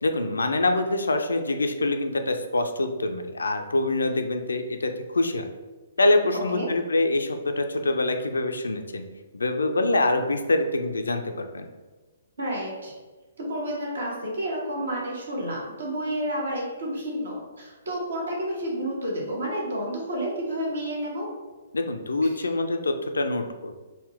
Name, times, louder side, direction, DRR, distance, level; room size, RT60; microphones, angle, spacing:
voice 1, 0.0-5.4 6.0-9.0 9.3-11.7 21.7-23.8, left 2 dB, 70° left, 6 dB, 0.3 m, -25 dB
voice 2, 6.3-6.7 12.4-12.9 13.4-21.3 22.3-22.4, equal, 65° right, -3 dB, 1.0 m, -30 dB
3.7 x 2.1 x 3.4 m, 1.3 s
figure-of-eight pair, 125°, 0 cm